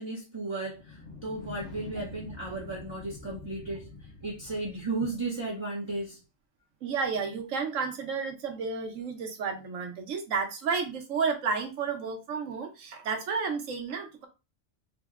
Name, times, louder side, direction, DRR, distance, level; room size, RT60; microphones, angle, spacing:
voice 1, 0.0-3.9 4.2-6.2, right 2 dB, 25° right, -3 dB, 0.8 m, -34 dB
sound 1, 0.6-5.5, left 3 dB, 70° left, 1.5 m, -46 dB
voice 2, 6.8-14.3, right 5 dB, 85° right, 5 dB, 1.2 m, -32 dB
3.8 x 2.2 x 3.5 m, 0.28 s
omnidirectional pair, 1.3 m